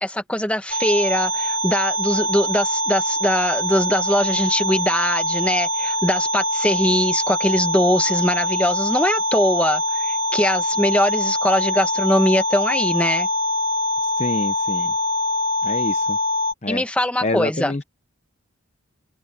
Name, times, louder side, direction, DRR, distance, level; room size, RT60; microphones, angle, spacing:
voice 1, 0.0-13.3 16.7-17.7, left 1 dB, 5° left, 1.2 m, -21 dB
sound 1, 0.7-16.5, left 1 dB, 85° right, 3.4 m, -23 dB
voice 2, 14.2-14.9 15.6-16.2 16.6-16.8 17.2-17.8, left 2 dB, 30° left, 0.8 m, -26 dB
head